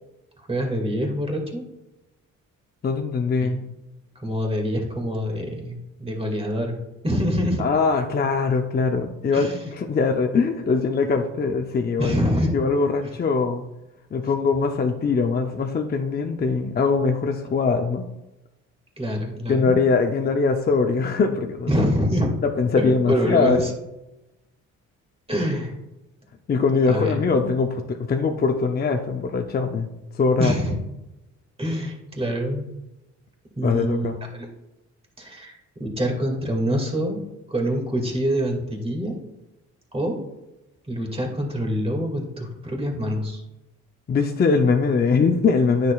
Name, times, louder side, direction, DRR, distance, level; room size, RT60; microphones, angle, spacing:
voice 1, 0.5-1.6 3.4-3.6 4.2-6.8 7.0-7.6 9.3-9.7 12.0-12.6 19.0-19.8 21.7-22.3 22.8-23.7 25.3-25.7 26.9-27.3 30.4-30.8 31.6-32.7 33.6-34.5 35.2-37.2 37.5-39.2 39.9-40.2 40.9-43.4, equal, 20° right, 1 dB, 2.1 m, -25 dB
voice 2, 2.8-3.6 7.6-12.2 12.5-13.7 14.1-18.1 19.5-21.7 22.4-23.7 26.5-29.9 30.1-30.5 33.6-34.1 44.1-45.9, left 4 dB, 30° left, 4 dB, 0.6 m, -22 dB
9.5 x 6.6 x 2.4 m, 0.96 s
cardioid pair, 90°, 30 cm